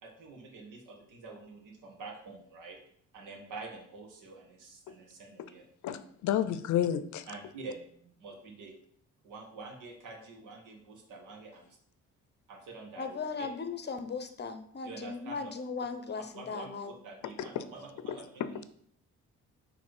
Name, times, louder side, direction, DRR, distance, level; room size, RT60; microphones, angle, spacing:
voice 1, 0.0-2.8 3.1-5.6 7.3-8.8 9.2-11.8 12.5-13.5 14.8-15.5 16.3-18.6, right 3 dB, 85° right, 2 dB, 1.5 m, -47 dB
voice 2, 5.8-7.2, left 10 dB, 75° left, 12 dB, 0.6 m, -30 dB
voice 3, 13.0-16.9, left 5 dB, 35° left, 9 dB, 0.8 m, -37 dB
6.2 x 3.3 x 4.8 m, 0.64 s
cardioid pair, 90°, 30 cm